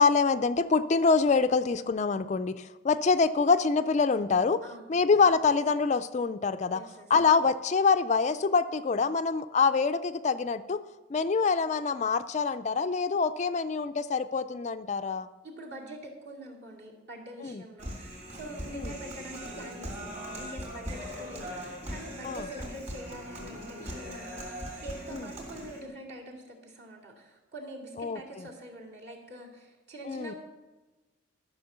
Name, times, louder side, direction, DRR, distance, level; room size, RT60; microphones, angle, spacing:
voice 1, 0.0-4.6 4.9-6.8 7.1-10.8 11.1-15.3 17.4-17.6 18.7-18.9 22.2-22.4 28.0-28.2 30.0-30.3, left 4 dB, 35° left, 11 dB, 0.3 m, -25 dB
voice 2, 4.6-4.9 6.7-7.1 15.4-30.4, right 1 dB, 55° right, -2 dB, 2.4 m, -45 dB
Human voice, 17.8-25.8, equal, 35° right, 3.1 m, -40 dB
13.0 x 6.1 x 6.8 m, 1.1 s
head